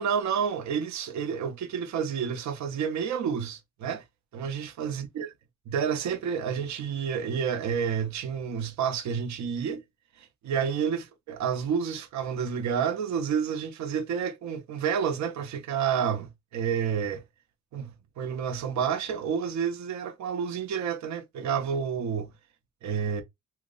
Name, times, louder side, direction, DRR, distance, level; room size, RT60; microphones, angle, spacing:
voice 1, 0.0-4.0 4.3-5.3 5.7-9.8 10.2-17.2 17.7-22.3 22.8-23.2, right 7 dB, 65° right, 0.8 m, -29 dB
2.8 x 2.0 x 3.7 m
cardioid pair, 90°, 30 cm